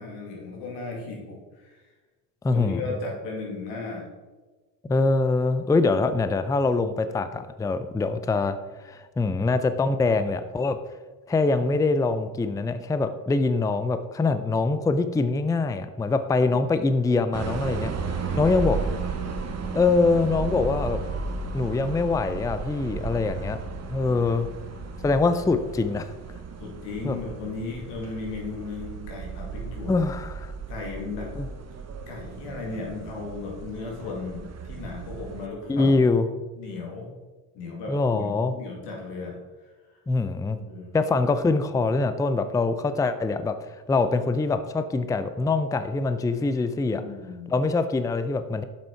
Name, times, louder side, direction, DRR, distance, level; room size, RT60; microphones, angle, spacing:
voice 1, 0.0-1.8 2.5-4.0 18.3-20.0 24.0-24.2 26.6-29.9 30.7-31.3 32.1-35.9 36.5-37.1 37.5-39.4 39.6-40.0 40.5-41.0 46.9-47.5, left 3 dB, 90° left, -1 dB, 2.2 m, -36 dB
voice 2, 2.4-2.8 4.9-8.6 8.8-10.8 11.3-18.8 19.7-21.0 21.5-23.6 23.9-24.5 25.0-26.1 27.0-27.2 29.9-30.5 31.4-31.5 35.7-36.3 37.9-38.5 40.1-40.6 40.9-43.6 43.9-47.0 47.5-48.6, left 3 dB, 10° left, 10 dB, 0.4 m, -24 dB
sound 1, 17.3-35.5, right 4 dB, 40° right, 1.0 m, -34 dB
7.2 x 6.2 x 4.5 m, 1.3 s
supercardioid pair, 80°, 41 cm